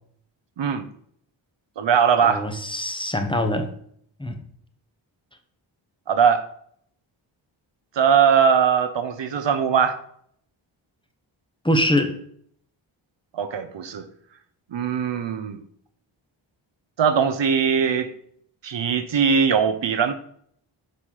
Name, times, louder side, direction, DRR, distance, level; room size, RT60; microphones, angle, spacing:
voice 1, 0.6-0.9 1.8-2.5 6.1-6.4 8.0-10.0 13.3-14.1 14.7-15.6 17.0-18.1 18.6-20.1, right 7 dB, 65° right, 0.7 m, -20 dB
voice 2, 2.2-3.7 4.2-4.4 11.6-12.2, left 1 dB, 10° left, 1.0 m, -23 dB
4.9 x 4.2 x 5.5 m
cardioid pair, 55°, 48 cm